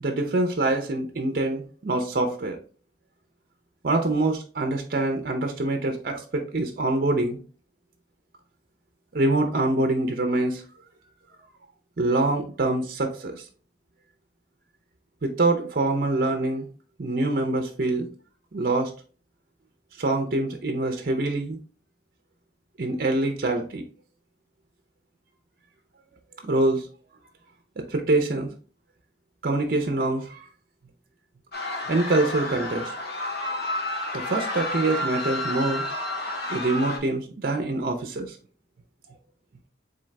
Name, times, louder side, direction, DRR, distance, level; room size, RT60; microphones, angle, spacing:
voice 1, 0.0-2.6 3.8-7.4 9.1-10.6 12.0-13.4 15.2-16.7 17.0-18.1 18.5-18.9 20.0-21.6 22.8-23.8 26.4-26.9 27.8-28.5 29.4-30.5 31.9-32.9 34.1-35.8 36.5-38.4, right 2 dB, 50° right, 5 dB, 0.5 m, -25 dB
sound 1, 31.5-37.0, left 1 dB, 55° left, 0.9 m, -30 dB
3.8 x 3.8 x 3.2 m, 0.40 s
head